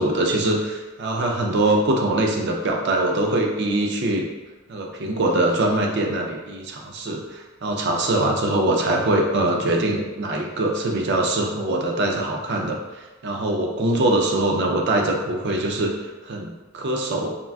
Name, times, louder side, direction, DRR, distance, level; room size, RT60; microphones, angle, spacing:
voice 1, 0.0-4.3 4.7-15.9 16.2-17.4, right 1 dB, 60° right, 1 dB, 0.5 m, -23 dB
3.7 x 2.4 x 2.2 m, 1.2 s
head